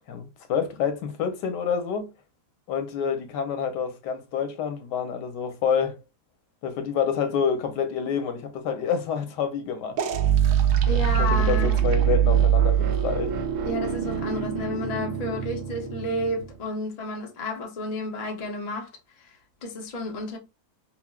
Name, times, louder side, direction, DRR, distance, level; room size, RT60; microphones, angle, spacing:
voice 1, 0.1-2.1 2.7-6.0 6.6-10.0 10.9-13.3, left 7 dB, 85° left, 1.4 m, -28 dB
sound 1, 10.0-16.6, right 9 dB, 70° right, 0.8 m, -23 dB
voice 2, 10.8-11.8 13.6-18.9 19.2-19.3 19.6-20.4, left 2 dB, 35° left, 0.7 m, -31 dB
5.6 x 2.0 x 2.2 m
omnidirectional pair, 1.8 m